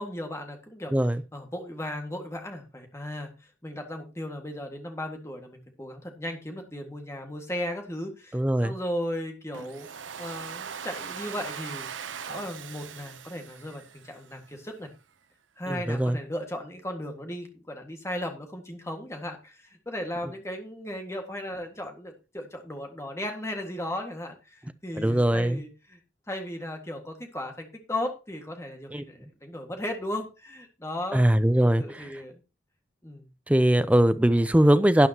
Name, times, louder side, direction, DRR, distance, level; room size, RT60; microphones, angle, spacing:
voice 1, 0.0-0.9 1.3-9.9 10.2-11.9 12.3-14.9 15.6-26.0 26.3-31.2 31.8-32.4 33.0-33.3, left 1 dB, 15° left, 1.8 m, -36 dB
voice 2, 0.9-1.2 8.3-8.7 15.7-16.2 25.0-25.6 28.9-29.0 31.1-32.2 33.5-35.1, right 1 dB, 5° right, 0.5 m, -21 dB
Domestic sounds home sounds, 9.5-14.5, right 7 dB, 85° right, 0.7 m, -40 dB
12.5 x 9.2 x 2.9 m
head